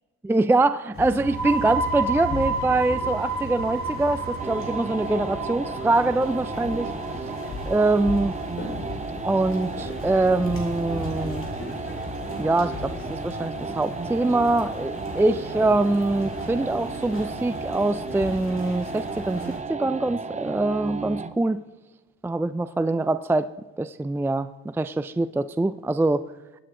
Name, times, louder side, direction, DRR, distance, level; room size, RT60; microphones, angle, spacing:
voice 1, 0.3-6.9 7.7-8.3 9.2-11.4 12.4-19.4 19.7-21.6 22.2-23.5 23.8-26.2, right 2 dB, 10° right, 13 dB, 0.4 m, -24 dB
sound 1, 0.9-19.6, left 2 dB, 45° left, 4.3 m, -37 dB
sound 2, 1.1-8.5, right 3 dB, 70° right, 3.0 m, -31 dB
sound 3, 4.4-21.4, right 4 dB, 25° right, 0.8 m, -34 dB
22.0 x 9.0 x 3.7 m, 1.1 s
cardioid pair, 90°, 30 cm